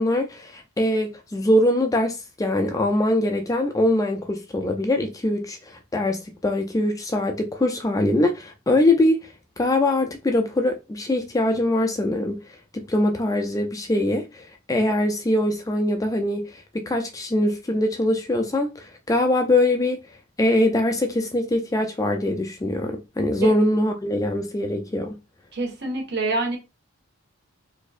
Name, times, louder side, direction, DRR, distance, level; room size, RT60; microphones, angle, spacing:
voice 1, 0.0-9.2 9.6-12.4 12.7-20.0 20.4-25.1, left 1 dB, 15° left, 0.4 m, -23 dB
voice 2, 25.5-26.6, right 3 dB, 55° right, 1.4 m, -26 dB
4.1 x 2.7 x 2.4 m
head